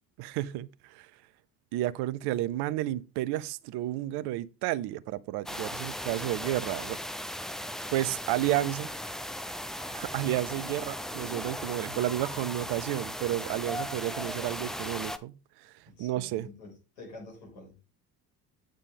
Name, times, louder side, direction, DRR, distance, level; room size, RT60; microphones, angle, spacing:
voice 1, 0.2-1.1 1.7-7.0 7.9-8.9 9.9-15.7 16.0-16.5, right 15 dB, 55° right, 0.7 m, -31 dB
sound 1, 5.5-15.2, equal, ahead, 0.4 m, -37 dB
voice 2, 11.8-12.1 15.9-17.7, left 1 dB, 70° left, 6.0 m, -48 dB
9.0 x 6.7 x 3.6 m
figure-of-eight pair, 60°, 49 cm